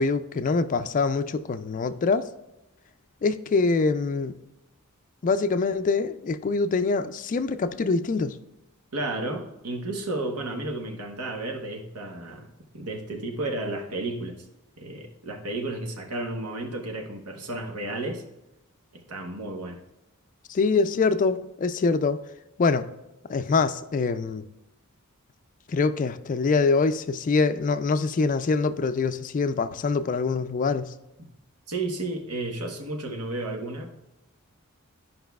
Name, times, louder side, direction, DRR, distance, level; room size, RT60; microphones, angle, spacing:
voice 1, 0.0-2.3 3.2-4.4 5.2-8.4 20.5-22.2 22.6-22.9 23.3-24.4 25.7-30.9, left 4 dB, 35° left, 11 dB, 0.3 m, -24 dB
voice 2, 8.9-12.5 12.7-14.4 14.8-18.2 18.9-19.8 31.7-33.9, right 2 dB, 90° right, 3 dB, 1.1 m, -32 dB
11.0 x 5.4 x 2.3 m, 0.94 s
head